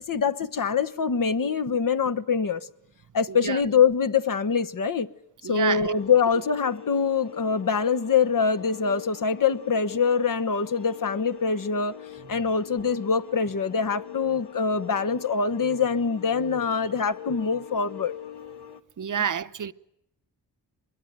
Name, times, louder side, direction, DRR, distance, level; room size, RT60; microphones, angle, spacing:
voice 1, 0.1-2.6 3.1-5.1 5.5-11.9 12.3-18.1, left 6 dB, 50° left, 1.2 m, -24 dB
voice 2, 3.3-3.6 5.4-5.9 12.2-12.4 19.0-19.7, right 8 dB, 50° right, 0.9 m, -29 dB
sound 1, 5.7-18.8, left 10 dB, 75° left, 1.8 m, -42 dB
23.5 x 21.5 x 9.1 m
cardioid pair, 90°, 40 cm